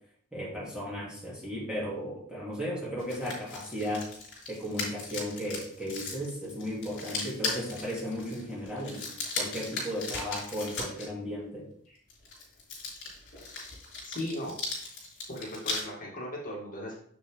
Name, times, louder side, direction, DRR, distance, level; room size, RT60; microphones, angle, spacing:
voice 1, 0.3-4.1 4.5-9.0 9.4-11.7, equal, 5° right, -6 dB, 2.5 m, -35 dB
sound 1, 3.0-11.1 12.1-15.8, left 3 dB, 55° left, 3.5 m, -37 dB
voice 2, 14.0-14.5 15.3-17.0, left 1 dB, 40° left, -5 dB, 2.5 m, -37 dB
7.4 x 6.5 x 3.5 m, 0.63 s
head